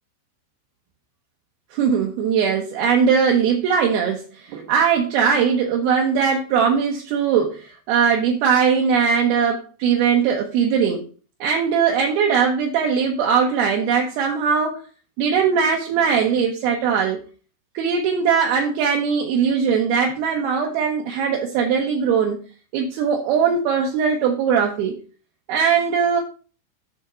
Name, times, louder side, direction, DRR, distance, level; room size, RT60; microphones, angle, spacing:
voice 1, 1.7-4.2 4.5-11.0 11.4-14.8 15.2-17.2 17.7-22.4 22.7-25.0 25.5-26.2, right 6 dB, 75° right, -1 dB, 2.4 m, -20 dB
10.5 x 3.6 x 5.5 m, 0.37 s
omnidirectional pair, 5.6 m